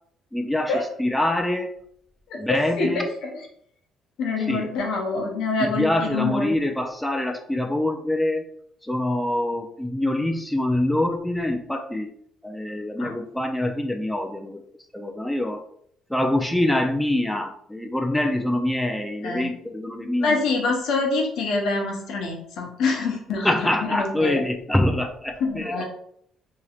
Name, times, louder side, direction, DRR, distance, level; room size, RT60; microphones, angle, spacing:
voice 1, 0.3-1.7 2.4-3.1 4.5-4.7 5.6-8.5 8.8-12.1 12.4-14.6 14.9-15.6 16.1-20.4 23.4-25.8, left 1 dB, 5° left, 4 dB, 0.4 m, -25 dB
voice 2, 2.3-3.5 4.2-6.5 13.0-13.1 19.2-19.5 20.2-24.4 25.4-25.8, left 3 dB, 70° left, 1 dB, 0.8 m, -26 dB
2.9 x 2.9 x 2.4 m, 0.66 s
hypercardioid pair, 60°, 0 cm